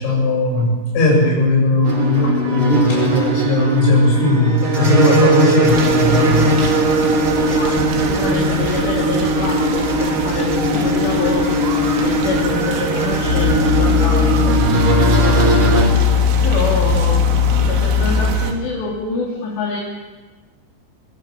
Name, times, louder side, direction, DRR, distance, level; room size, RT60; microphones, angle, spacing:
voice 1, 0.0-6.9, left 1 dB, 85° left, -8 dB, 8.7 m, -17 dB
sound 1, 1.8-15.9, right 1 dB, 30° right, 3.3 m, -19 dB
sound 2, 5.7-18.5, right 6 dB, 90° right, 4.4 m, -26 dB
voice 2, 7.5-16.0 16.4-17.3 17.6-19.8, left 3 dB, 70° left, -2 dB, 4.9 m, -26 dB
sound 3, 13.3-18.3, left 7 dB, 25° left, 3.4 m, -17 dB
25.0 x 22.5 x 6.7 m, 1.3 s
omnidirectional pair, 5.2 m